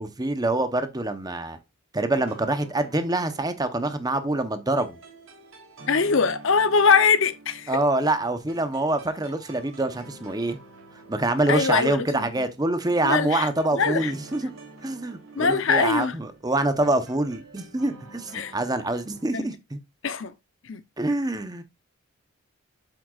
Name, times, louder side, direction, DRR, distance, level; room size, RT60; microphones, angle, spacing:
voice 1, 0.0-1.6 1.9-5.0 7.7-10.6 11.1-14.5 14.8-19.8 21.0-21.6, right 2 dB, 20° right, 0.8 m, -25 dB
sound 1, 2.1-19.2, right 2 dB, 75° right, 3.2 m, -48 dB
voice 2, 5.9-7.7 11.5-12.3 13.0-14.1 15.4-16.1 18.3-18.5 19.3-19.5 20.0-20.3 20.7-20.8, left 5 dB, 60° left, 0.7 m, -22 dB
7.7 x 7.5 x 2.4 m
head